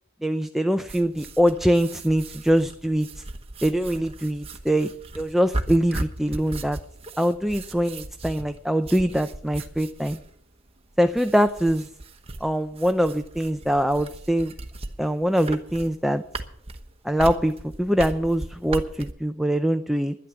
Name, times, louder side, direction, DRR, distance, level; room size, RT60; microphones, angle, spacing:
voice 1, 0.2-3.2 3.6-6.8 7.2-10.2 11.0-11.9 12.4-14.5 15.0-16.2 17.0-20.2, equal, ahead, 8 dB, 0.5 m, -23 dB
sound 1, 0.9-19.1, right 2 dB, 30° right, 1.1 m, -37 dB
12.0 x 10.5 x 6.9 m, 0.68 s
head